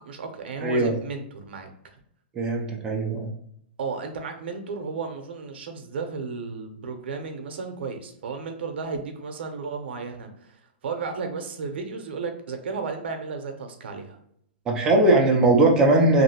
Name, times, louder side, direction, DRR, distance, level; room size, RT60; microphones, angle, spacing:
voice 1, 0.0-1.7 3.8-14.2, right 4 dB, 85° right, 6 dB, 0.6 m, -33 dB
voice 2, 0.6-0.9 2.4-3.3 14.7-16.2, right 2 dB, 10° right, -1 dB, 0.4 m, -19 dB
2.8 x 2.6 x 2.8 m, 0.71 s
supercardioid pair, 170°, 6 cm